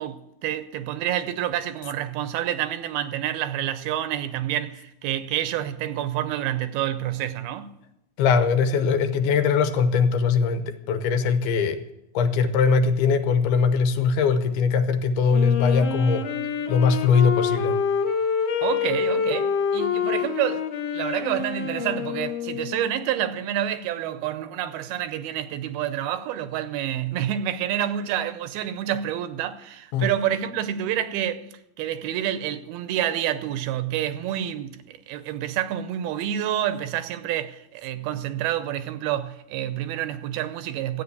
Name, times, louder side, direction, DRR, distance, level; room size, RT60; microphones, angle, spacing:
voice 1, 0.0-7.7 18.6-31.4 31.8-41.0, right 11 dB, 85° right, 2.5 m, -28 dB
voice 2, 8.2-11.8 12.1-16.2 16.7-17.8 29.9-30.1, left 5 dB, 80° left, 2.9 m, -21 dB
Wind instrument woodwind instrument, 15.3-23.0, left 7 dB, 65° left, 1.6 m, -26 dB
14.0 x 8.4 x 8.1 m
omnidirectional pair, 4.5 m